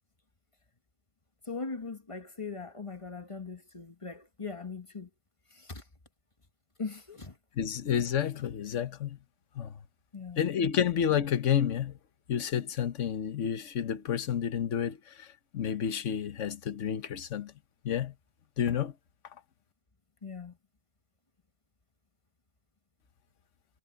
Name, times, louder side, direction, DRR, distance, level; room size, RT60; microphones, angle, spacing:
voice 1, 1.4-5.1 5.5-5.8 6.8-7.4 10.1-10.5 20.2-20.6, left 4 dB, 20° left, 1.1 m, -40 dB
voice 2, 7.6-9.2 9.5-9.8 10.4-12.0 12.3-17.5 17.8-18.1 18.6-18.9, left 9 dB, 50° left, 1.2 m, -30 dB
omnidirectional pair, 1.8 m